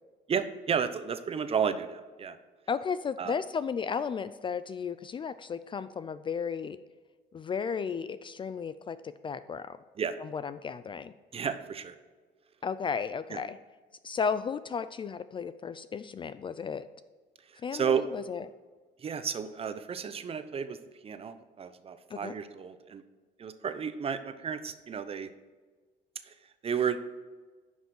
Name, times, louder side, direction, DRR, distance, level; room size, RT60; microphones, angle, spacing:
voice 1, 0.3-2.4 3.2-3.3 10.0-10.1 11.3-11.9 13.3-13.4 17.7-18.0 19.0-20.8 21.0-23.0 23.4-25.3 26.3-26.4 26.6-27.0, right 7 dB, 35° right, 11 dB, 0.7 m, -32 dB
voice 2, 2.7-6.8 7.3-9.8 10.2-11.1 12.6-13.6 14.0-16.9 17.6-18.5 22.1-22.3, left 6 dB, 30° left, 14 dB, 0.3 m, -34 dB
10.5 x 5.5 x 4.8 m, 1.4 s
cardioid pair, 110°, 17 cm